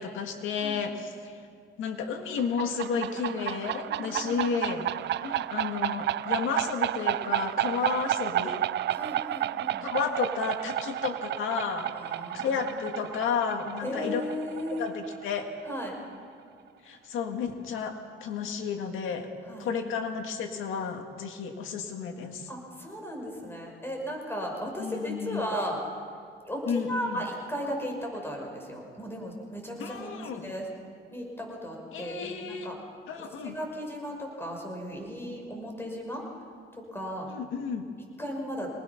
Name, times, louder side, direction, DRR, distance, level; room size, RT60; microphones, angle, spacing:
voice 1, 0.0-1.3 1.8-4.9 5.2-8.6 9.8-11.9 12.3-14.2 14.8-15.5 16.8-19.3 19.6-22.5 24.8-25.5 26.7-27.2 29.8-30.5 31.9-32.7 33.1-33.6 37.3-37.9, left 6 dB, 85° left, 5 dB, 2.0 m, -32 dB
sound 1, 2.4-15.8, right 13 dB, 60° right, 0.4 m, -31 dB
voice 2, 3.9-4.4 8.9-9.9 11.9-12.7 13.8-14.9 15.7-16.0 19.5-19.7 22.5-25.8 26.4-30.1 30.4-30.6 31.1-32.8 33.2-36.2 36.7-37.3 38.2-38.7, equal, 10° left, 1 dB, 5.5 m, -36 dB
25.5 x 19.5 x 5.9 m, 2.3 s
cardioid pair, 90°, 20 cm